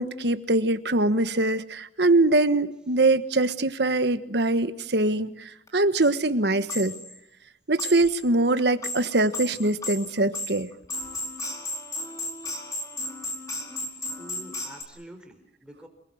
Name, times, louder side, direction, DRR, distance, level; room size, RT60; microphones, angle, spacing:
voice 1, 0.0-6.9 7.7-10.7, right 2 dB, 65° right, 12 dB, 1.4 m, -23 dB
sound 1, 5.7-5.8 6.0-6.1 6.7-7.2 7.8-8.2 8.6-14.8, left 2 dB, 20° left, 4.5 m, -34 dB
voice 2, 14.2-15.9, right 1 dB, 5° right, 5 dB, 4.2 m, -46 dB
28.0 x 20.5 x 7.9 m, 0.82 s
head